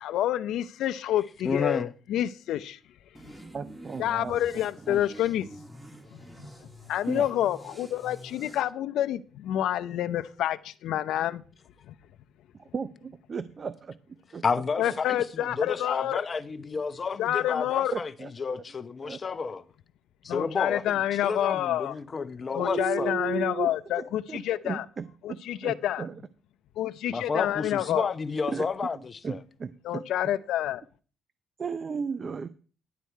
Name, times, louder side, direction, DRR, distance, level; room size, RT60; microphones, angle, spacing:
voice 1, 0.0-2.8 4.0-5.5 6.1-6.2 6.9-11.4 11.9-12.0 14.8-16.2 17.2-17.9 20.3-21.9 22.5-24.8 25.2-26.1 26.8-28.1 29.8-30.8, left 12 dB, 85° left, 0.6 m, -28 dB
voice 2, 1.4-1.9 14.4-19.6 20.2-23.1 27.1-29.4, left 5 dB, 40° left, 0.9 m, -31 dB
sound 1, 3.1-8.6, right 1 dB, 10° right, 1.8 m, -47 dB
voice 3, 3.5-4.3 4.9-5.0 7.1-7.3 12.6-14.0 14.3-14.4 14.8-14.9 15.4-15.6 17.9-18.6 19.0-19.2 22.6-26.1 28.5-28.7 28.9-30.0 31.6-32.5, right 6 dB, 40° right, 0.6 m, -35 dB
11.0 x 8.3 x 4.6 m
cardioid pair, 90°, 0 cm